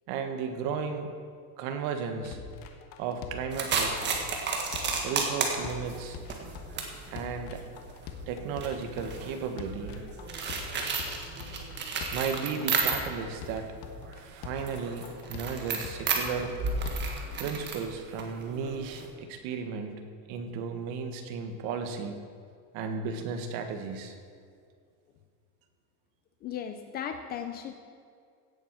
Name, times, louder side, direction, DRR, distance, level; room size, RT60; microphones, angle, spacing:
voice 1, 0.1-1.1 1.6-2.4 3.0-4.2 5.0-6.2 7.1-7.6 8.3-9.9 12.1-13.7 14.1-16.5 17.4-20.0 20.3-22.2 22.7-24.1, right 6 dB, 50° right, 6 dB, 1.7 m, -34 dB
sound 1, 2.2-17.2, left 6 dB, 50° left, 1.4 m, -44 dB
sound 2, 3.5-13.3 13.7-19.1, right 4 dB, 25° right, 1.7 m, -33 dB
voice 2, 26.4-27.7, left 8 dB, 25° left, 8 dB, 0.4 m, -37 dB
16.5 x 7.7 x 6.2 m, 2.2 s
supercardioid pair, 160°, 42 cm